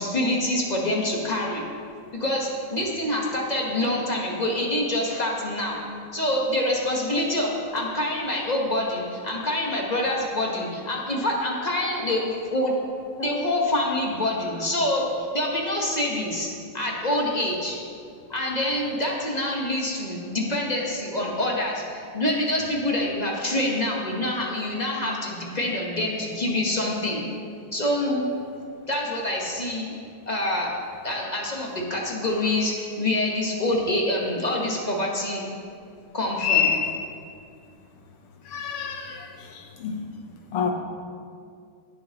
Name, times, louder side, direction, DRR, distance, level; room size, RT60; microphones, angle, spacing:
voice 1, 0.0-1.6 2.1-5.8 6.1-12.7 13.2-16.5 16.7-17.8 18.3-27.2 27.7-28.3 28.9-29.9 30.3-30.7 31.0-35.5 36.1-36.7, left 1 dB, 30° left, 0.8 m, -26 dB
voice 2, 36.4-36.9 38.5-39.2 39.8-40.0 40.5-40.7, left 7 dB, 90° left, 1.9 m, -24 dB
17.5 x 6.4 x 2.9 m
omnidirectional pair, 2.4 m